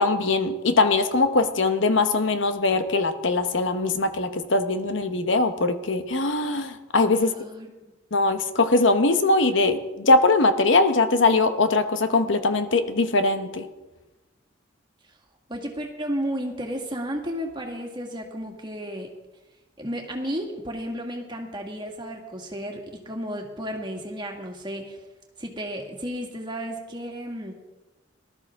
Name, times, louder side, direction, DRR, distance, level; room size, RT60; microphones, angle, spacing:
voice 1, 0.0-7.3 8.1-13.6, left 3 dB, 90° left, 9 dB, 1.1 m, -21 dB
voice 2, 7.2-7.7 15.5-19.1 19.8-25.0 25.4-27.6, equal, 25° right, 2 dB, 1.9 m, -33 dB
19.0 x 12.5 x 3.7 m, 1.1 s
head